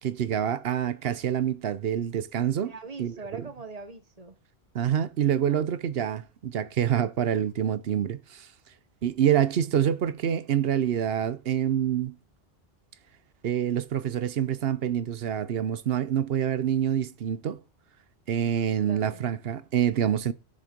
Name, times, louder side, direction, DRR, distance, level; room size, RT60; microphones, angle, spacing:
voice 1, 0.0-2.7 3.0-3.1 4.7-8.5 9.0-12.2 13.4-17.6 18.3-20.3, right 9 dB, 65° right, 0.9 m, -26 dB
voice 2, 2.6-4.4 5.5-5.7 18.8-19.2, right 4 dB, 40° right, 1.2 m, -42 dB
13.0 x 6.4 x 5.1 m
omnidirectional pair, 1.1 m